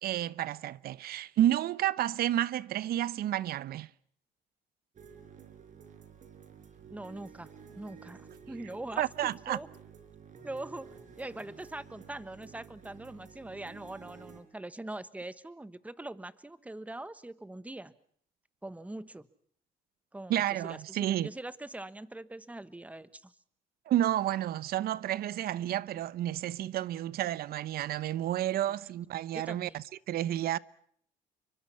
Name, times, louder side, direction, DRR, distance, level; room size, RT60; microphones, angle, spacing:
voice 1, 0.0-3.9 9.0-9.6 20.3-21.3 23.9-30.6, right 12 dB, 65° right, 0.9 m, -31 dB
sound 1, 4.9-14.4, right 6 dB, 45° right, 5.5 m, -52 dB
voice 2, 6.9-7.5 7.8-9.7 10.4-17.9 18.6-19.3 20.1-23.3 29.3-29.8, right 2 dB, 10° right, 1.3 m, -42 dB
29.0 x 24.0 x 5.7 m
cardioid pair, 110°, 17 cm